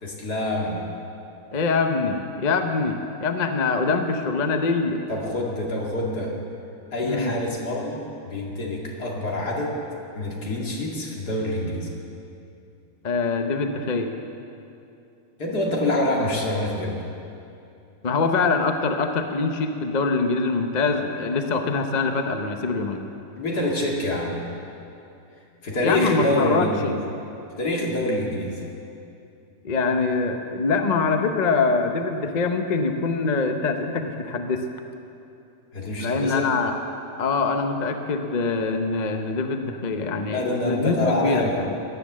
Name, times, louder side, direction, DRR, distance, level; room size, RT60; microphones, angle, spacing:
voice 1, 0.0-0.9 5.1-6.3 6.9-9.8 10.1-11.9 15.4-17.0 23.4-24.4 25.6-27.0 27.6-28.6 35.7-36.5 40.3-41.6, left 1 dB, 80° left, -2 dB, 2.9 m, -26 dB
voice 2, 1.5-5.0 7.0-7.4 13.0-14.1 18.0-23.0 25.8-27.0 29.6-34.7 36.0-36.7 37.2-41.8, left 4 dB, 35° left, 5 dB, 0.8 m, -24 dB
17.5 x 10.5 x 7.4 m, 2.7 s
omnidirectional pair, 1.7 m